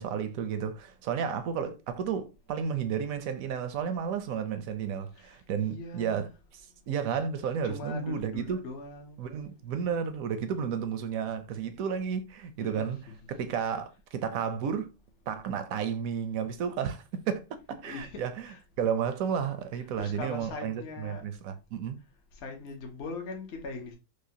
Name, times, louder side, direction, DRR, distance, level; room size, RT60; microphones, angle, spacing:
voice 1, 0.0-6.6 6.9-8.7 9.2-14.9 15.3-18.5 18.8-22.0, right 7 dB, 70° right, 0.9 m, -32 dB
voice 2, 5.2-6.3 7.4-9.2 12.6-13.2 17.8-18.6 19.8-21.2 22.4-24.0, left 3 dB, 50° left, 0.9 m, -41 dB
4.9 x 2.1 x 2.7 m
omnidirectional pair, 1.8 m